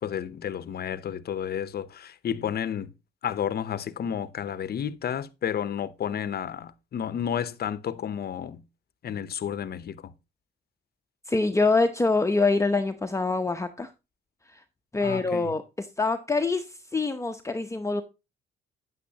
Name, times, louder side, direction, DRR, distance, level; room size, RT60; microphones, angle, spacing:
voice 1, 0.0-2.9 3.2-8.6 9.0-10.1 15.0-15.5, left 9 dB, 50° left, 0.8 m, -31 dB
voice 2, 11.3-13.9 14.5-14.6 14.9-18.0, left 3 dB, 15° left, 0.8 m, -25 dB
9.2 x 8.4 x 2.8 m
cardioid pair, 90°, 20 cm